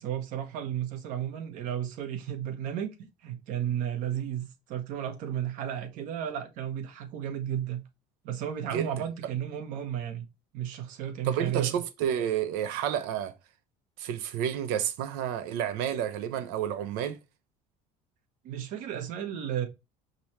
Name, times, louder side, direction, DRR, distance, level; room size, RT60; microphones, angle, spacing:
voice 1, 0.0-2.9 3.2-7.8 8.2-10.2 10.5-11.8 18.4-19.7, right 10 dB, 60° right, 1.1 m, -33 dB
voice 2, 11.2-13.3 14.0-17.2, right 9 dB, 75° right, 0.8 m, -30 dB
5.3 x 2.9 x 3.1 m
cardioid pair, 150°, 15 cm